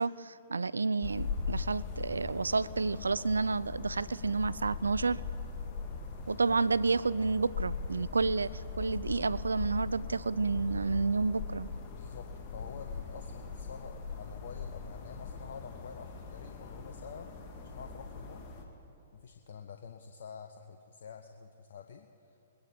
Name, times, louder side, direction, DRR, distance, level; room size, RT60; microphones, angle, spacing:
voice 1, 0.0-5.2 6.3-11.7, right 4 dB, 80° right, 19 dB, 0.3 m, -30 dB
sound 1, 1.0-18.7, left 4 dB, 35° left, 1.9 m, -40 dB
voice 2, 11.9-17.3 17.6-18.5 19.1-22.1, left 6 dB, 60° left, 5 dB, 0.7 m, -47 dB
21.0 x 10.5 x 5.3 m, 2.6 s
figure-of-eight pair, 115°, 0 cm